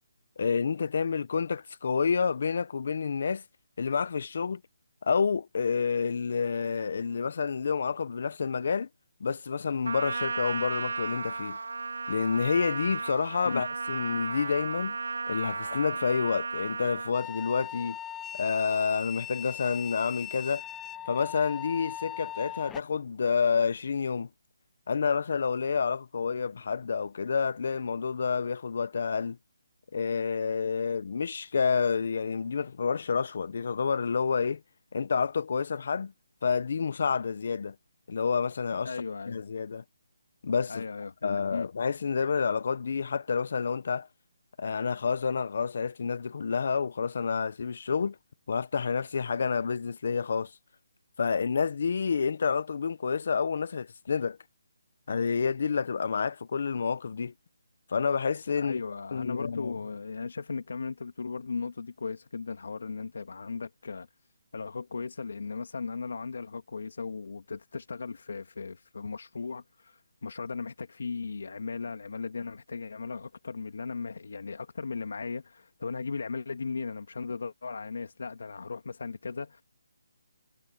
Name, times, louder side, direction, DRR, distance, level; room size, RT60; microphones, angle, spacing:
voice 1, 0.4-3.4 3.8-4.6 5.0-8.9 9.2-11.6 12.1-15.0 15.3-18.0 18.3-20.6 21.1-24.3 24.9-29.4 29.9-34.6 34.9-36.1 36.4-37.7 38.1-38.9 39.3-39.8 40.4-40.8 41.2-44.1 44.6-48.2 48.5-50.5 51.2-54.4 55.1-57.3 57.9-58.8 59.1-59.7, left 5 dB, 50° left, 0.9 m, -29 dB
Trumpet, 9.8-17.1, right 4 dB, 80° right, 3.7 m, -34 dB
sound 1, 17.1-22.8, left 11 dB, 10° left, 1.0 m, -39 dB
voice 2, 38.8-39.5 40.7-41.7 58.6-64.1 64.5-79.6, left 4 dB, 70° left, 2.7 m, -37 dB
hypercardioid pair, 170°, 0 cm